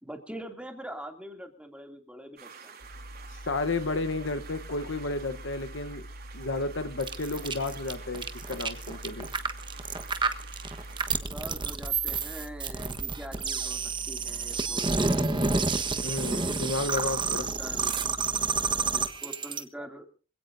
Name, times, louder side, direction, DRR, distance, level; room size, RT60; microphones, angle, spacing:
voice 1, 0.0-2.8 11.2-13.8 14.1-15.4 17.2-17.9 18.9-20.1, right 1 dB, 5° right, 2.7 m, -43 dB
sound 1, 2.4-11.2, right 6 dB, 50° right, 4.4 m, -49 dB
sound 2, 2.8-18.8, equal, 80° left, 6.4 m, -45 dB
voice 2, 3.3-6.1 6.3-9.3 16.0-17.4, left 3 dB, 65° left, 1.1 m, -32 dB
sound 3, 7.0-19.6, right 4 dB, 25° right, 1.3 m, -29 dB
26.0 x 17.0 x 2.7 m
head